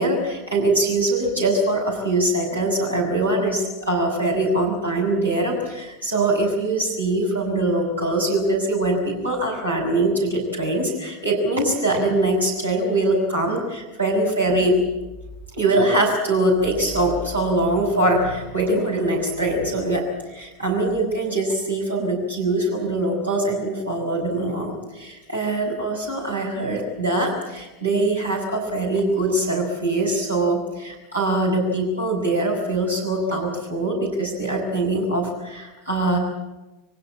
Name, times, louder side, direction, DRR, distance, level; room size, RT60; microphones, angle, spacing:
voice 1, 0.0-14.8 15.5-20.0 20.3-36.2, right 2 dB, 85° right, -2 dB, 6.8 m, -22 dB
24.0 x 17.0 x 8.8 m, 1.0 s
figure-of-eight pair, 85°, 0 cm